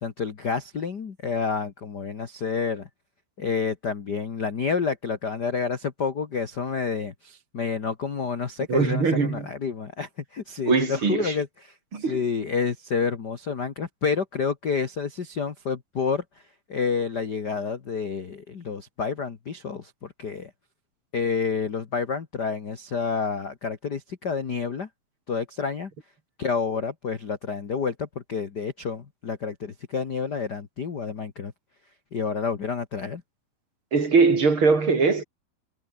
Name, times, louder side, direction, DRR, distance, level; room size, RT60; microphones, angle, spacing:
voice 1, 0.0-2.9 3.4-11.5 12.0-16.2 16.7-20.5 21.1-24.9 25.3-25.9 26.4-31.5 32.1-33.2, left 5 dB, 45° left, 1.4 m, -29 dB
voice 2, 8.7-9.5 10.7-11.4 11.9-12.2 33.9-35.2, right 4 dB, 35° right, 3.3 m, -21 dB
omnidirectional pair, 4.3 m